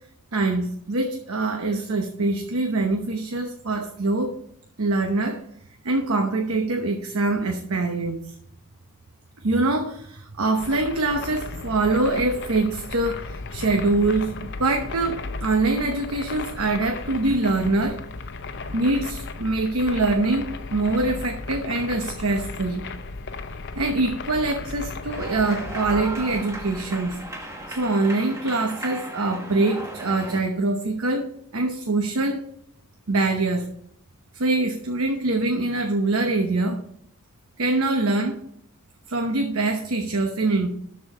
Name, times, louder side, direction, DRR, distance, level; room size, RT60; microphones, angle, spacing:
voice 1, 0.3-4.4 4.8-5.4 5.8-8.3 9.4-18.0 18.6-22.9 23.8-27.2 27.7-32.4 33.1-33.7 34.3-36.8 37.6-38.4 39.1-40.7, right 2 dB, 85° right, 4 dB, 1.0 m, -24 dB
sound 1, 10.6-27.9, left 3 dB, 55° left, 0.7 m, -36 dB
sound 2, 25.1-30.4, right 1 dB, 15° right, 1.4 m, -36 dB
12.5 x 4.7 x 5.0 m, 0.68 s
head